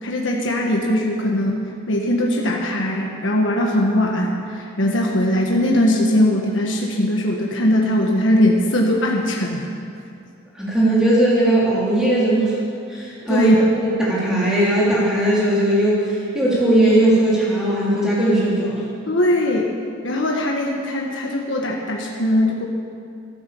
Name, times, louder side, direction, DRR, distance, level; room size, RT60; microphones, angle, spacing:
voice 1, 0.0-9.7 13.3-13.7 19.1-19.7 20.0-22.7, left 1 dB, 65° left, 0 dB, 1.5 m, -20 dB
voice 2, 10.5-12.6 12.9-18.8, right 1 dB, 5° right, -8 dB, 3.9 m, -18 dB
14.0 x 11.0 x 7.1 m, 2.4 s
head